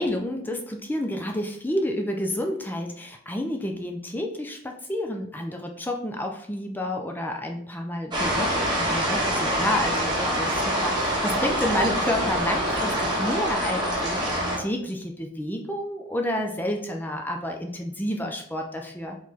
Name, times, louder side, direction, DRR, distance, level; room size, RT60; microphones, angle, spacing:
voice 1, 0.0-19.2, left 1 dB, 10° left, 3 dB, 0.4 m, -30 dB
sound 1, 8.1-14.6, equal, 20° right, 1.2 m, -25 dB
4.1 x 3.1 x 4.1 m, 0.67 s
head